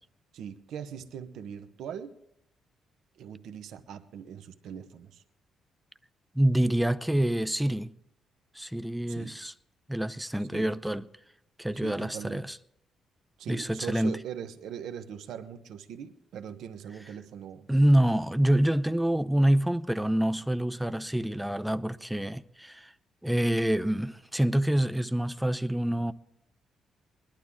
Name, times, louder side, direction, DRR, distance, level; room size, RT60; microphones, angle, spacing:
voice 1, 0.3-2.2 3.2-5.2 9.1-9.3 10.4-10.7 11.7-12.4 13.4-17.7, right 8 dB, 80° right, 1.0 m, -41 dB
voice 2, 6.3-7.9 8.5-9.5 9.9-11.0 11.6-12.6 13.5-14.2 17.7-22.9 23.2-26.1, right 1 dB, 5° right, 0.6 m, -26 dB
20.5 x 12.0 x 3.7 m
cardioid pair, 90°, 0 cm